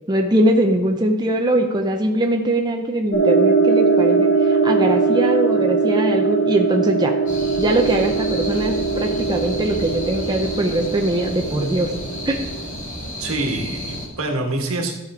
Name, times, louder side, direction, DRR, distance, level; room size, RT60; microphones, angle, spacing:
voice 1, 0.1-7.1 7.6-11.9 12.3-12.4, right 1 dB, 20° right, 2 dB, 0.6 m, -21 dB
sound 1, 3.1-12.6, right 4 dB, 75° left, 3.9 m, -20 dB
sound 2, 7.3-14.1, equal, 35° left, 2.5 m, -32 dB
voice 2, 13.2-14.9, right 2 dB, 70° right, 2 dB, 1.6 m, -25 dB
13.5 x 5.1 x 4.9 m, 1.0 s
head